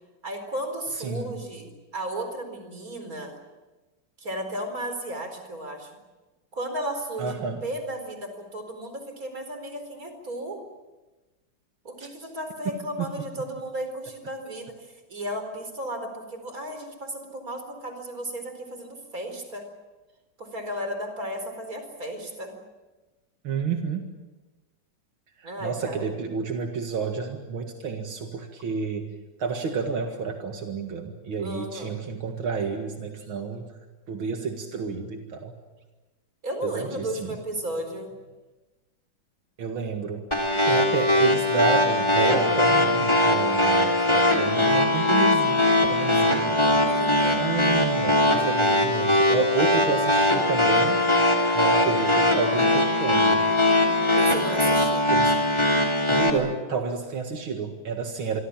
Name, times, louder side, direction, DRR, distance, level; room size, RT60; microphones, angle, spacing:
voice 1, 0.2-3.4 4.2-5.9 6.5-10.6 11.8-14.7 15.1-19.6 20.4-22.5 25.4-26.0 31.4-32.0 36.4-38.1 46.8-47.5 54.1-55.1, right 1 dB, 45° right, 6 dB, 4.9 m, -34 dB
voice 2, 1.0-1.4 7.2-7.6 12.0-12.1 13.0-13.1 23.4-24.1 25.4-29.1 29.4-33.7 34.1-35.6 36.6-37.4 39.6-40.3 40.7-46.5 47.3-51.0 51.5-53.5 55.1-55.4 56.1-58.4, right 5 dB, 80° right, 4 dB, 2.7 m, -30 dB
sound 1, 40.3-56.3, left 1 dB, 15° left, 3.2 m, -21 dB
27.5 x 24.0 x 7.4 m, 1.2 s
omnidirectional pair, 2.2 m